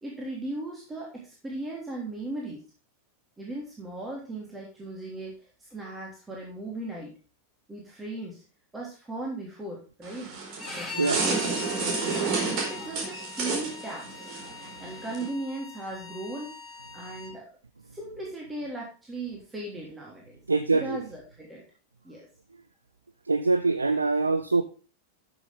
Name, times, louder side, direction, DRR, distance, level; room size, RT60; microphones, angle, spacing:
voice 1, 0.0-2.6 3.4-7.1 7.7-8.4 8.7-10.3 10.8-12.4 12.7-14.3 14.8-17.5 17.9-20.4 20.7-21.6 22.0-22.3, right 2 dB, 10° right, 3.3 m, -38 dB
sound 1, 10.0-15.3, right 4 dB, 40° right, 4.3 m, -31 dB
Bowed string instrument, 10.6-17.3, left 5 dB, 20° left, 3.7 m, -41 dB
voice 2, 20.5-21.0 23.3-24.6, right 3 dB, 80° right, 0.6 m, -24 dB
13.0 x 7.1 x 3.6 m
figure-of-eight pair, 90°, 0 cm